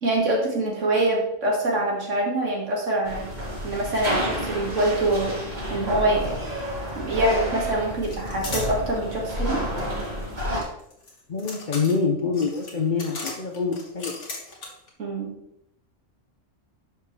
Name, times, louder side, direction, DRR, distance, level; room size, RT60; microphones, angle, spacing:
voice 1, 0.0-3.3 3.6-5.4 5.7-6.4 7.0-9.6 15.0-15.3, right 1 dB, 70° right, -2 dB, 2.5 m, -24 dB
sound 1, 3.0-10.6, equal, 35° right, 2.2 m, -30 dB
sound 2, 6.2-6.3 6.6-7.3 8.0-8.7 10.0-14.9, left 2 dB, 65° left, 1.9 m, -37 dB
voice 2, 11.3-14.1, left 5 dB, 45° left, 3 dB, 0.8 m, -25 dB
11.5 x 5.1 x 3.3 m, 0.78 s
omnidirectional pair, 1.3 m